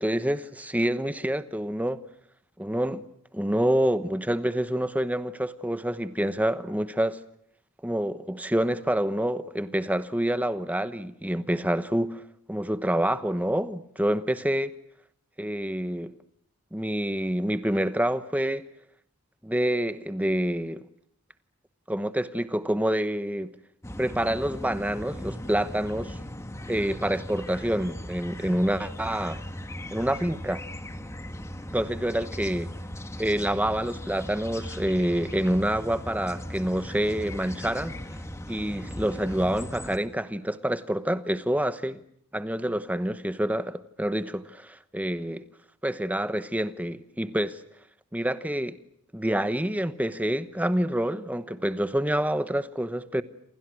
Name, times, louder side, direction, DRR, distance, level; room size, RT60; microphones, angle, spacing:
voice 1, 0.0-2.0 2.6-3.0 3.3-7.2 7.8-14.7 15.4-16.1 16.7-18.6 19.4-20.8 21.9-23.5 24.0-26.2 26.7-29.4 29.9-30.6 31.7-32.7 33.2-37.9 38.5-42.0 42.3-45.4 45.8-47.6 48.1-48.8 49.1-53.2, right 1 dB, 5° right, 1.0 m, -27 dB
sound 1, 23.8-40.0, left 1 dB, 15° left, 1.4 m, -38 dB
28.5 x 27.5 x 6.2 m
head